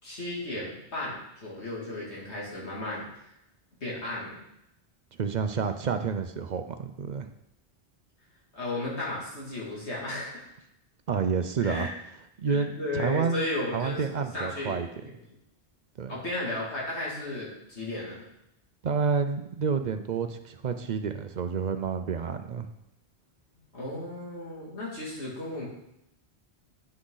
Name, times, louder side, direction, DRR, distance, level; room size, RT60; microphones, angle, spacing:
voice 1, 0.0-3.1 3.8-4.4 8.5-10.5 11.6-11.9 12.5-14.0 14.3-14.8 15.0-15.1 16.1-18.2 23.6-25.7, left 1 dB, 80° left, -5 dB, 2.8 m, -34 dB
voice 2, 5.2-7.3 11.1-11.9 12.4-13.4 13.7-14.9 16.0-16.2 18.8-22.7, right 5 dB, 50° right, 8 dB, 0.6 m, -29 dB
9.8 x 6.2 x 3.9 m, 0.83 s
omnidirectional pair, 1.1 m